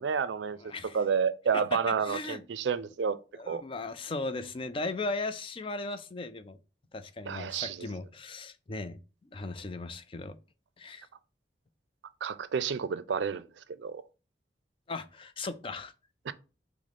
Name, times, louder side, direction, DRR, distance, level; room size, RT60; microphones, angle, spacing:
voice 1, 0.0-0.6 0.9-3.2 3.5-3.6 7.3-7.9 12.2-13.4 13.8-14.0 16.3-16.4, right 6 dB, 85° right, 0.4 m, -30 dB
voice 2, 0.6-1.0 1.5-2.4 3.3-6.6 6.9-9.0 9.3-10.4 10.8-11.1 14.9-15.9, left 3 dB, 30° left, 0.4 m, -37 dB
6.0 x 2.1 x 4.1 m
head